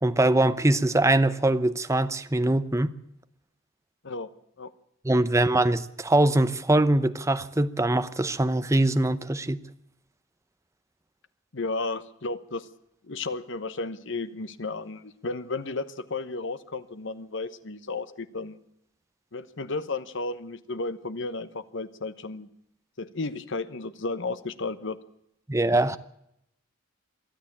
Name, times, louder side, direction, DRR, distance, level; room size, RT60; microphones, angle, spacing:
voice 1, 0.0-2.9 5.0-9.6 25.5-26.0, right 1 dB, 15° right, 0.8 m, -22 dB
voice 2, 11.5-12.7 13.0-18.6 19.3-22.5 23.0-25.0, left 3 dB, 65° left, 1.1 m, -33 dB
23.0 x 13.5 x 8.7 m
head